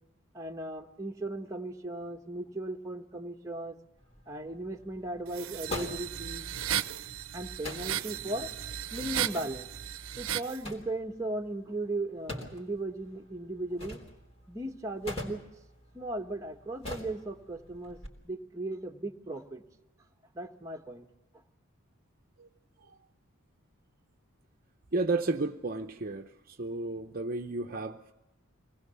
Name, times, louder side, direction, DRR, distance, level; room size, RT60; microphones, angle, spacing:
voice 1, 0.3-3.7 4.3-6.5 7.3-8.5 8.9-9.7 10.2-14.0 14.5-15.4 15.9-18.0 18.2-19.6 20.3-21.0, right 2 dB, 15° right, 2 dB, 1.4 m, -37 dB
sound 1, 4.0-18.1, left 2 dB, 30° left, 3.6 m, -45 dB
sound 2, 5.3-10.6, right 10 dB, 70° right, 0.7 m, -35 dB
voice 2, 24.9-28.1, right 2 dB, 40° right, 5 dB, 0.8 m, -33 dB
25.0 x 19.5 x 7.0 m, 0.94 s
head